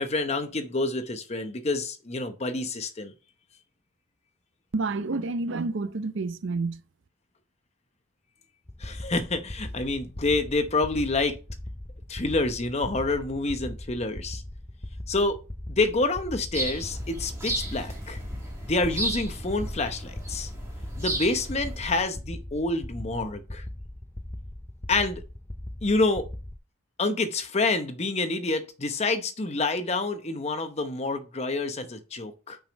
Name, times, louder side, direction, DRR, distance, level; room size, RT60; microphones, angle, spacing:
voice 1, 0.0-3.1 8.8-11.4 12.1-14.4 15.1-15.4 15.7-18.2 18.7-20.5 21.0-23.6 24.9-25.2 25.8-26.3 27.0-32.6, left 2 dB, 30° left, 0.8 m, -27 dB
voice 2, 4.7-6.8, right 3 dB, 60° right, 0.5 m, -29 dB
sound 1, 8.7-26.6, left 1 dB, 10° left, 0.3 m, -40 dB
sound 2, 16.5-22.0, right 1 dB, 15° right, 2.2 m, -34 dB
6.1 x 5.1 x 5.2 m
head